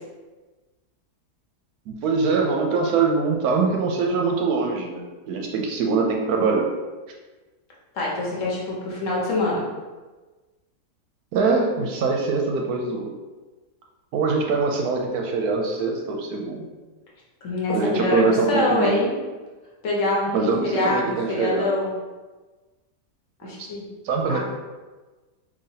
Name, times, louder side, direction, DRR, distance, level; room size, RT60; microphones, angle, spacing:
voice 1, 1.9-6.7 11.3-13.1 14.1-16.7 17.7-19.0 20.3-21.7 23.4-23.5 24.0-24.4, right 4 dB, 75° right, 1 dB, 1.0 m, -23 dB
voice 2, 7.9-9.7 17.4-19.2 19.8-21.9 23.4-23.9 24.3-24.4, left 2 dB, 55° left, -4 dB, 1.1 m, -24 dB
3.9 x 3.0 x 2.7 m, 1.3 s
omnidirectional pair, 1.7 m